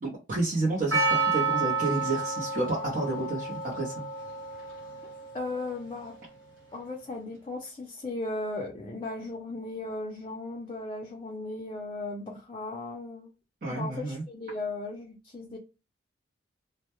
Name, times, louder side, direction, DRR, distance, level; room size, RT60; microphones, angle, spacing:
voice 1, 0.0-4.0 13.6-14.2, right 2 dB, 45° right, 0.7 m, -30 dB
Percussion, 0.9-5.8, right 3 dB, 80° right, 1.1 m, -30 dB
voice 2, 5.3-6.1 6.7-13.3 13.7-15.6, left 2 dB, 30° left, 0.4 m, -36 dB
2.1 x 2.1 x 2.9 m
head